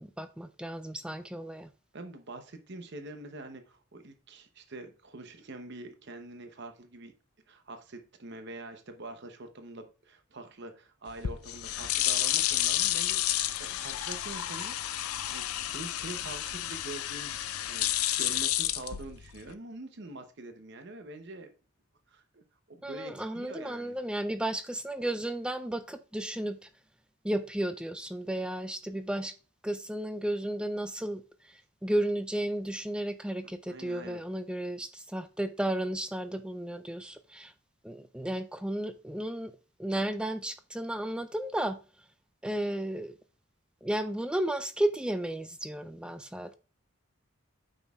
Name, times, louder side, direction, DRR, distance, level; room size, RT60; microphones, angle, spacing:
voice 1, 0.0-1.7 22.8-26.7 27.2-29.4 29.6-37.5 37.8-39.5 39.8-41.8 42.4-43.1 43.8-46.5, right 1 dB, 5° right, 0.3 m, -33 dB
voice 2, 1.9-7.1 7.5-14.7 15.3-17.9 18.2-21.5 22.1-24.0 33.7-34.2, right 2 dB, 50° right, 0.8 m, -45 dB
sound 1, 11.1-19.5, left 13 dB, 85° left, 0.5 m, -31 dB
8.8 x 6.2 x 2.4 m
head